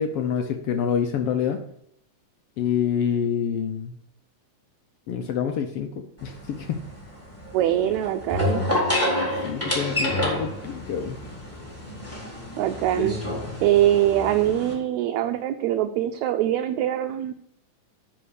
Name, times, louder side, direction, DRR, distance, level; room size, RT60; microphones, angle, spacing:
voice 1, 0.0-1.6 2.6-3.9 5.1-6.8 9.4-11.2, left 7 dB, 80° left, 5 dB, 1.3 m, -27 dB
sound 1, 6.2-14.7, left 1 dB, 5° left, 2.8 m, -29 dB
voice 2, 7.5-8.6 12.6-13.2 13.6-17.3, right 12 dB, 80° right, 6 dB, 1.8 m, -23 dB
9.9 x 4.5 x 6.5 m, 0.71 s
omnidirectional pair, 3.5 m